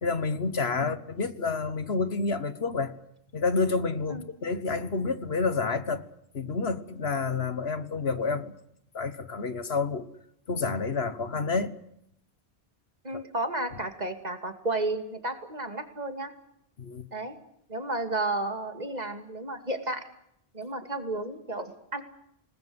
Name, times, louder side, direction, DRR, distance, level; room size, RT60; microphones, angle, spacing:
voice 1, 0.0-2.9 3.3-6.0 6.3-8.5 8.9-10.1 10.5-11.8 16.8-17.1, left 4 dB, 75° left, 1.7 m, -29 dB
voice 2, 13.0-16.3 17.1-17.3 17.7-20.1 20.5-22.0, right 2 dB, 40° right, 2.7 m, -32 dB
27.0 x 20.0 x 8.0 m
omnidirectional pair, 1.1 m